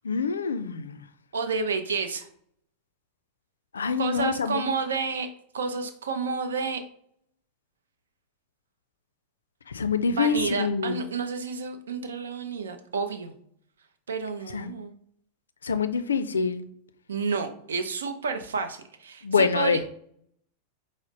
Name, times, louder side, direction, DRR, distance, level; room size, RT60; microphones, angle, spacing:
voice 1, 0.0-1.0 3.7-4.6 9.7-11.0 14.5-14.7 15.6-16.6 19.2-19.8, left 5 dB, 70° left, 11 dB, 0.3 m, -25 dB
voice 2, 1.3-2.3 4.0-5.3 5.5-6.8 10.1-13.3 14.1-14.9 17.1-19.9, right 5 dB, 65° right, 8 dB, 0.6 m, -30 dB
5.0 x 2.0 x 3.8 m, 0.68 s
figure-of-eight pair, 90°, 0 cm